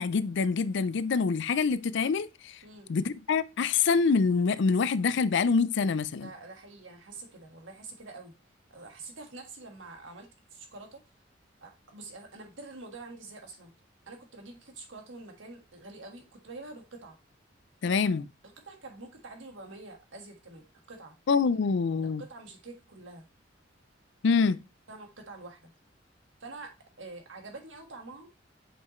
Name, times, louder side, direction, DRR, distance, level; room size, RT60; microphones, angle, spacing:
voice 1, 0.0-2.6 2.9-6.3 17.8-18.3 21.3-22.2 24.2-24.6, left 5 dB, 65° left, 0.4 m, -26 dB
voice 2, 2.6-2.9 6.2-8.3 8.7-11.0 11.6-13.7 14.1-17.2 18.6-21.2 21.6-21.7 22.2-23.3 24.9-25.7 26.4-28.3, right 3 dB, 75° right, 1.6 m, -46 dB
7.0 x 5.5 x 3.1 m
head